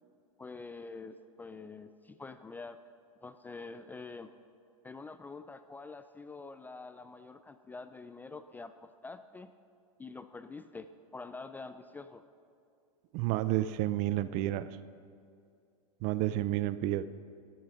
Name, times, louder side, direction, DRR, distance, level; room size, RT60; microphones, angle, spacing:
voice 1, 0.4-2.8 3.2-4.3 4.8-9.5 10.0-12.2, left 3 dB, 10° left, 11 dB, 0.3 m, -46 dB
voice 2, 13.1-14.7 16.0-17.1, right 14 dB, 45° right, 15 dB, 0.5 m, -30 dB
13.0 x 11.0 x 5.8 m, 2.5 s
hypercardioid pair, 120°, 18 cm